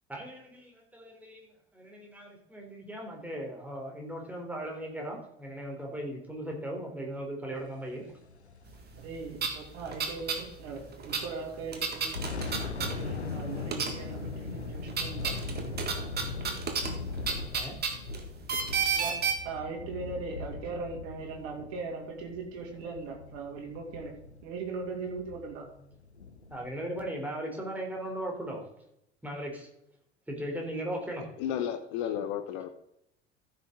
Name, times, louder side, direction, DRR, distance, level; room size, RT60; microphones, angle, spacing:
voice 1, 0.1-8.0 17.5-17.7 26.5-28.7 29.2-29.7 30.3-31.3, right 1 dB, 5° right, 0 dB, 3.5 m, -38 dB
sound 1, 8.1-10.9 11.2-11.4 11.9-26.7, left 4 dB, 85° left, 0.8 m, -40 dB
voice 2, 8.9-12.3 12.9-15.4 18.9-25.7, right 4 dB, 50° right, 1 dB, 2.7 m, -39 dB
sound 2, 9.0-9.1 9.3-10.4 10.7-13.4 13.7-14.3 14.6-19.3, right 6 dB, 30° right, 1.9 m, -32 dB
voice 3, 31.4-32.7, left 9 dB, 50° left, 8 dB, 1.0 m, -32 dB
14.5 x 6.8 x 3.8 m, 0.77 s
figure-of-eight pair, 70°, 32 cm